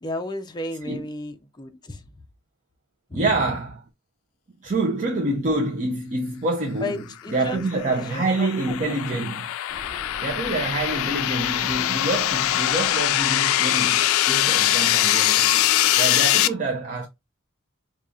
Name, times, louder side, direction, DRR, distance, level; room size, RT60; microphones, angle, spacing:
voice 1, 0.0-2.0 3.1-3.3 6.8-7.6 7.9-9.0 10.8-11.1, left 2 dB, 20° left, 0.4 m, -34 dB
voice 2, 3.1-3.8 4.6-7.0 7.3-9.5 10.2-15.6 16.0-17.1, right 2 dB, 40° right, 0.6 m, -26 dB
sound 1, 7.5-16.5, left 13 dB, 90° left, 0.3 m, -22 dB
sound 2, 9.7-14.0, equal, 5° right, 0.9 m, -46 dB
5.0 x 2.4 x 2.3 m
head